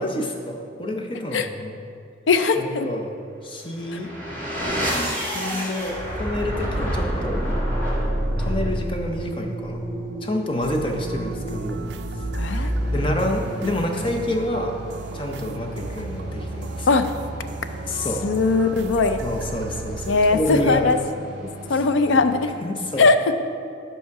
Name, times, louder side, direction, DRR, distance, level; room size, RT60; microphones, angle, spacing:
voice 1, 0.0-1.8 2.6-3.1 3.4-4.1 5.2-7.4 8.4-9.8 10.2-11.9 12.2-12.3 12.9-14.8 15.1-16.9 17.9-18.2 19.2-20.8 21.7-21.8 22.6-23.1, left 1 dB, 25° left, 3 dB, 0.7 m, -28 dB
voice 2, 2.3-2.9 12.3-12.7 16.9-17.1 18.2-19.2 20.1-21.0 21.7-22.5 23.0-23.4, left 3 dB, 80° left, 9 dB, 0.5 m, -19 dB
sound 1, 3.7-14.4, equal, 10° left, 1.5 m, -28 dB
sound 2, 10.6-20.9, right 3 dB, 60° right, 0.3 m, -36 dB
sound 3, 12.5-22.5, equal, 5° right, 1.4 m, -39 dB
8.4 x 5.6 x 4.7 m, 2.5 s
head